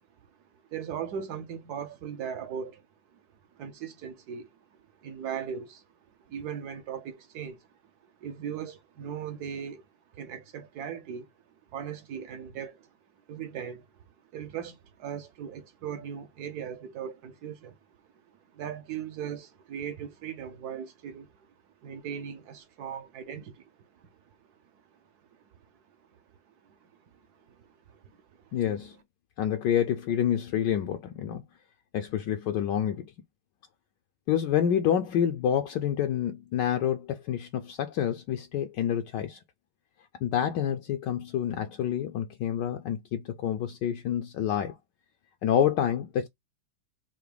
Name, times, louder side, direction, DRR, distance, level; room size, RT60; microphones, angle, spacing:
voice 1, 0.7-2.8 3.1-3.2 3.5-4.5 5.0-5.8 6.3-7.7 8.2-9.8 10.1-11.3 11.7-12.9 13.3-13.9 14.3-17.8 18.5-21.5 21.8-24.1 26.6-26.9 27.3-28.0 28.4-28.6, right 8 dB, 65° right, 1.0 m, -38 dB
voice 2, 28.5-29.0 29.4-31.4 31.9-33.1 34.3-39.4 40.2-44.7 45.4-46.3, left 9 dB, 75° left, 1.1 m, -28 dB
5.8 x 2.1 x 3.2 m
omnidirectional pair, 2.2 m